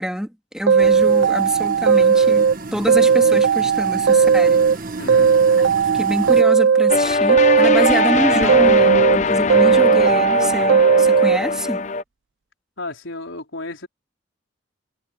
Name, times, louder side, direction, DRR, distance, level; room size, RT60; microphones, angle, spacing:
voice 1, 0.0-4.6 5.9-11.8, equal, 5° right, 2.9 m, -26 dB
sound 1, 0.7-2.5 2.9-4.8 5.1-7.0 7.3-9.2 9.5-11.4, right 6 dB, 80° right, 0.6 m, -16 dB
sound 2, 0.8-6.4, right 3 dB, 50° right, 1.6 m, -32 dB
voice 2, 5.0-5.4 12.8-13.9, left 2 dB, 85° left, 4.5 m, -33 dB
sound 3, 6.9-12.0, left 3 dB, 40° left, 0.7 m, -20 dB
head